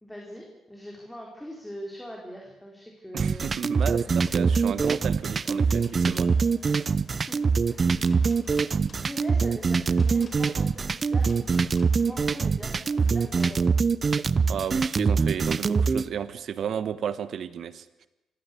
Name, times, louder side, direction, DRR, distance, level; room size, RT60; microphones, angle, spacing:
voice 1, 0.0-3.5 4.0-4.3 7.1-8.4 8.9-11.5 12.0-13.9, equal, 5° left, 0 dB, 4.1 m, -42 dB
voice 2, 3.1-6.3 14.5-17.9, right 8 dB, 60° right, 15 dB, 1.4 m, -33 dB
sound 1, 3.2-16.0, right 5 dB, 35° right, 0.7 m, -24 dB
sound 2, 3.4-13.6, left 2 dB, 30° left, 3.9 m, -53 dB
25.5 x 16.5 x 8.4 m, 1.0 s
cardioid pair, 90°, 0 cm